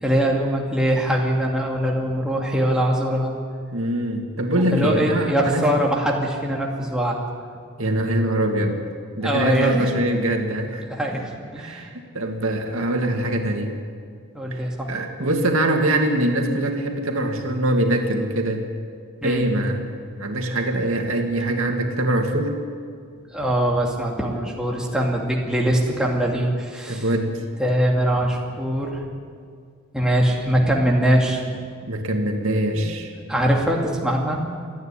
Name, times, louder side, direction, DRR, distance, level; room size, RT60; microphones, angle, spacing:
voice 1, 0.0-3.3 4.6-7.2 9.2-9.9 10.9-11.9 14.3-14.9 19.2-19.4 23.3-27.0 27.6-29.1 29.9-31.7 32.8-32.9 33.3-34.4, right 1 dB, 5° right, -2 dB, 2.3 m, -22 dB
voice 2, 3.7-5.6 7.8-8.8 9.2-10.8 11.6-13.7 14.5-18.6 19.2-22.5 26.9-27.3 31.8-33.1, right 1 dB, 80° right, 3 dB, 2.2 m, -23 dB
27.5 x 9.6 x 9.9 m, 2.1 s
head